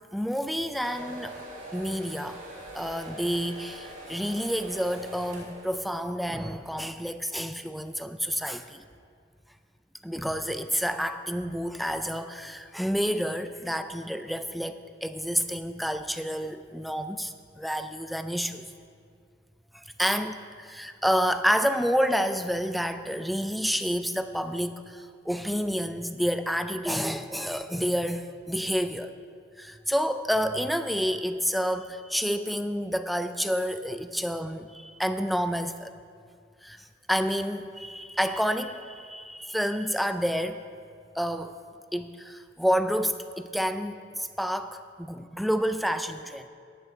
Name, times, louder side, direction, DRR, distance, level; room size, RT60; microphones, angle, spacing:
voice 1, 0.1-1.4 1.7-2.4 2.7-8.8 10.0-18.6 19.7-29.1 29.6-35.9 36.6-40.6 41.2-41.6 41.9-44.8 45.4-46.5, equal, ahead, 9 dB, 0.4 m, -29 dB
sound 1, 0.7-6.2, right 1 dB, 40° right, 3.0 m, -43 dB
10.5 x 5.9 x 7.7 m, 2.2 s
head